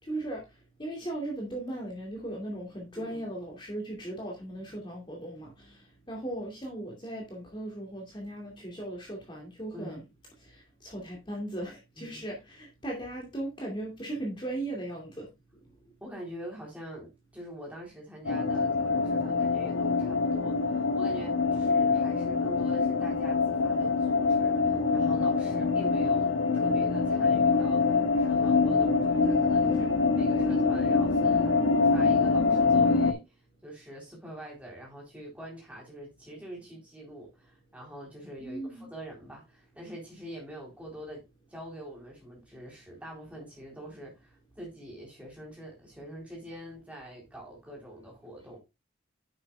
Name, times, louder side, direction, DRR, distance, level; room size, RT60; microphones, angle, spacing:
voice 1, 0.0-10.0 10.4-15.3 38.4-38.9, right 1 dB, 25° left, 2.5 m, -38 dB
voice 2, 16.0-31.6 31.8-33.4 33.6-48.6, right 1 dB, 5° right, 3.8 m, -45 dB
sound 1, 18.2-33.1, left 4 dB, 80° left, 1.3 m, -25 dB
9.8 x 7.9 x 2.4 m
head